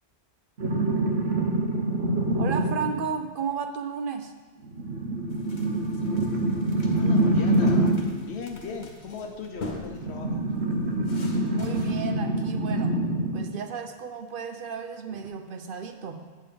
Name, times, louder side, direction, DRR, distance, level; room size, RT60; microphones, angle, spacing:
sound 1, 0.6-3.1 4.7-8.2 10.0-13.6 15.2-15.3, right 1 dB, 80° right, 1.1 m, -25 dB
voice 1, 2.4-4.3 11.5-13.0 13.3-16.3, right 6 dB, 60° right, 7 dB, 0.7 m, -33 dB
sound 2, 5.3-11.9, left 2 dB, 45° left, 1.0 m, -43 dB
voice 2, 6.9-7.9 8.2-10.4, left 5 dB, 80° left, 4 dB, 1.1 m, -37 dB
8.7 x 3.8 x 6.7 m, 1.3 s
omnidirectional pair, 1.1 m